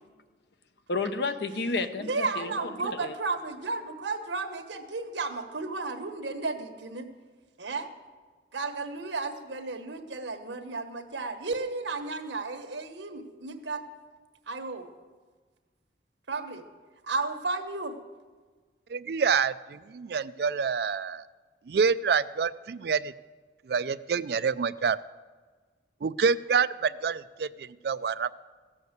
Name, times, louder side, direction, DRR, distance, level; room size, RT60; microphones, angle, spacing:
voice 1, 0.9-3.1, left 3 dB, 70° left, 9 dB, 0.8 m, -31 dB
voice 2, 2.0-7.1 7.6-7.9 8.5-13.8 14.5-14.9 16.3-16.6 17.0-18.0, right 3 dB, 85° right, 7 dB, 1.2 m, -33 dB
voice 3, 18.9-21.2 21.7-23.1 23.7-25.0 26.0-28.3, right 5 dB, 60° right, 16 dB, 0.4 m, -27 dB
15.5 x 7.1 x 8.0 m, 1.4 s
head